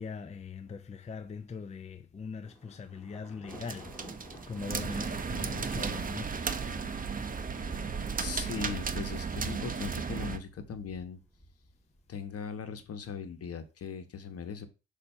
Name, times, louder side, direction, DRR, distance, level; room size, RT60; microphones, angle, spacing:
voice 1, 0.0-4.0 4.5-6.6, left 5 dB, 20° left, 0.6 m, -41 dB
Thunder, 2.4-12.3, equal, 5° left, 2.3 m, -50 dB
sound 1, 3.5-10.4, right 5 dB, 30° right, 0.8 m, -35 dB
voice 2, 8.2-11.2 12.1-14.7, left 6 dB, 50° left, 1.2 m, -39 dB
6.7 x 2.8 x 5.6 m
cardioid pair, 90°, 30 cm